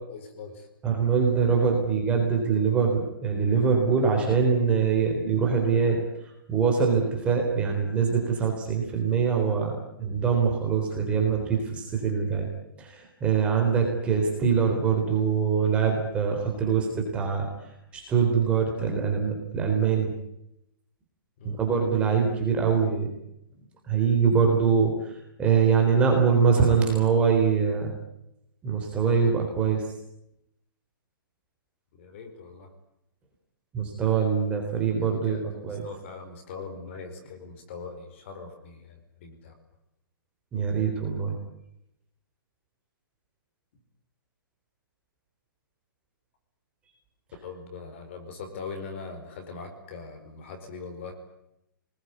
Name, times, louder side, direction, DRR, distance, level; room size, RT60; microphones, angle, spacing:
voice 1, 0.1-0.7 21.4-21.6 32.0-32.7 35.0-39.5 47.4-51.1, left 4 dB, 35° left, 5 dB, 4.7 m, -41 dB
voice 2, 0.8-6.0 6.5-12.5 12.8-17.5 17.9-20.1 21.4-23.1 23.9-27.9 28.6-29.8 33.7-35.8 40.5-41.3, right 6 dB, 10° right, 1 dB, 3.8 m, -23 dB
25.5 x 20.5 x 9.7 m, 0.84 s
hypercardioid pair, 175°, 11 cm